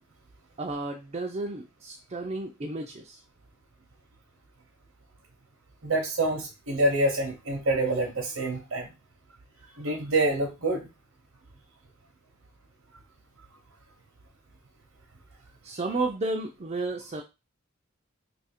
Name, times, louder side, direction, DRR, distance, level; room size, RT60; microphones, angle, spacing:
voice 1, 0.6-3.2 15.6-17.2, right 2 dB, 30° right, 1 dB, 0.4 m, -32 dB
voice 2, 5.8-8.9 9.8-10.9, right 2 dB, 70° right, -2 dB, 0.8 m, -26 dB
2.8 x 2.5 x 4.2 m, 0.26 s
head